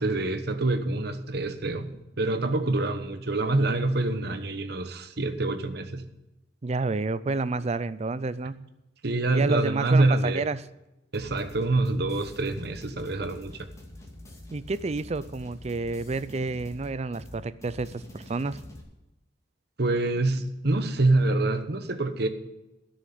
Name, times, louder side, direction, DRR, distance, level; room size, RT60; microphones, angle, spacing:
voice 1, 0.0-6.1 9.0-10.4 11.1-13.6 19.8-22.3, right 2 dB, 60° right, 8 dB, 1.1 m, -26 dB
voice 2, 6.6-8.6 9.3-10.7 14.5-18.6, right 3 dB, 35° right, 16 dB, 0.4 m, -29 dB
sound 1, 11.1-18.8, left 1 dB, 15° left, 2.2 m, -46 dB
12.5 x 6.4 x 9.4 m, 0.96 s
head